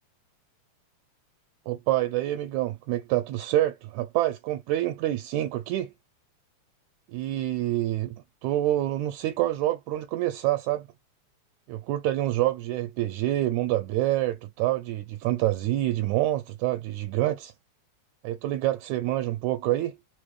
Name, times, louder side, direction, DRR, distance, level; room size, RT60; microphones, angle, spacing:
voice 1, 1.7-5.9 7.1-8.2 8.4-10.9 11.7-17.5 18.2-20.0, right 14 dB, 80° right, 1.8 m, -27 dB
5.2 x 2.2 x 3.2 m
omnidirectional pair, 3.5 m